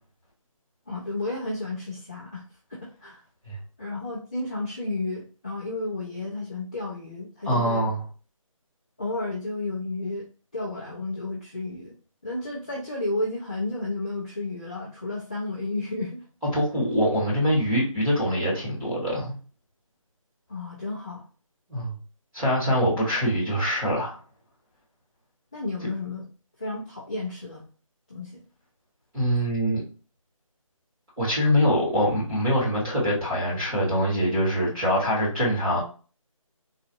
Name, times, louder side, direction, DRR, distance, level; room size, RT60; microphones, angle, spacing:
voice 1, 0.9-2.4 2.7-3.2 3.8-7.9 9.0-10.3 10.5-11.9 12.2-16.3 20.5-21.3 25.5-26.3 26.6-27.7 28.1-28.4, left 2 dB, 15° left, -9 dB, 0.5 m, -32 dB
voice 2, 7.5-8.0 16.5-19.4 21.7-21.9 22.3-24.2 29.1-29.8 31.2-35.8, equal, 5° right, -9 dB, 1.0 m, -24 dB
3.9 x 2.4 x 2.6 m, 0.36 s
figure-of-eight pair, 170°, 18 cm